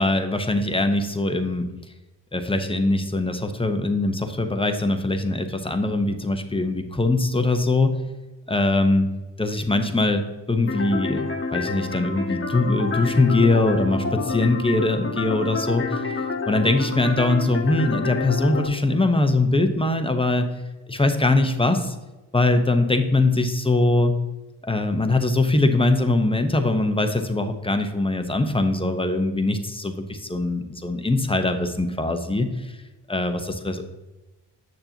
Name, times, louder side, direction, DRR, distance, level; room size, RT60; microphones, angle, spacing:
voice 1, 0.0-1.7 2.3-8.0 8.5-9.1 9.4-11.2 11.5-16.0 16.5-20.5 20.9-21.9 22.3-24.1 24.6-32.7 33.1-33.8, left 2 dB, 10° left, 7 dB, 1.0 m, -22 dB
sound 1, 10.7-18.7, left 4 dB, 30° left, 1.4 m, -29 dB
7.6 x 6.7 x 2.9 m, 1.1 s
supercardioid pair, 40°, 44 cm